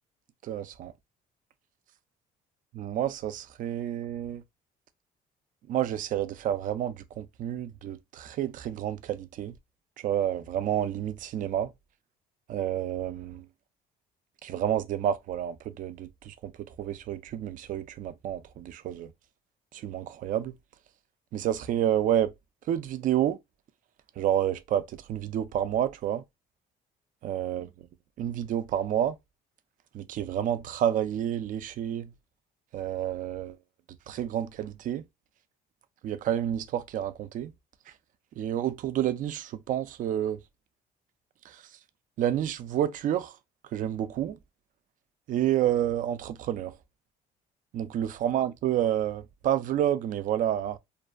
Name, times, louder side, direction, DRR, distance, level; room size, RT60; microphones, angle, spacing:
voice 1, 0.4-0.9 2.8-4.4 5.7-9.5 10.0-11.7 12.5-13.4 14.4-19.1 19.7-20.5 21.3-22.3 22.7-23.4 24.2-26.2 27.2-27.7 28.2-29.2 29.9-32.1 32.7-33.6 34.1-35.0 36.0-37.5 38.4-40.4 41.5-41.6 42.2-43.4 43.7-44.4 45.3-46.7 47.7-50.8, right 11 dB, 50° right, 0.4 m, -29 dB
2.5 x 2.2 x 2.4 m
cardioid pair, 110°, 17 cm